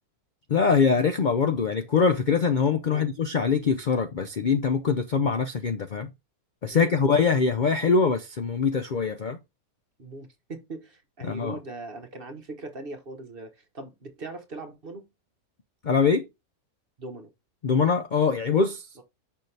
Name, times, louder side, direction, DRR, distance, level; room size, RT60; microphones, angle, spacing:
voice 1, 0.5-6.1 6.6-9.4 11.2-11.6 15.8-16.3 17.6-18.9, left 5 dB, 50° left, 0.6 m, -23 dB
voice 2, 10.0-15.1 17.0-17.3 19.0-19.1, right 2 dB, 40° right, 1.3 m, -40 dB
6.6 x 5.7 x 3.3 m
omnidirectional pair, 1.6 m